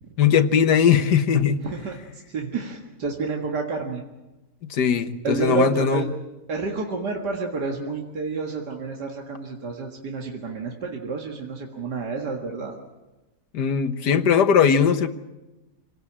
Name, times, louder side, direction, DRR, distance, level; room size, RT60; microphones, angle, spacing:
voice 1, 0.2-1.6 4.6-6.0 13.5-15.1, left 7 dB, 90° left, 1.7 m, -19 dB
voice 2, 1.6-2.0 2.3-4.0 5.2-6.1 6.5-12.8, right 4 dB, 90° right, 2.5 m, -29 dB
26.5 x 18.0 x 8.7 m
omnidirectional pair, 1.7 m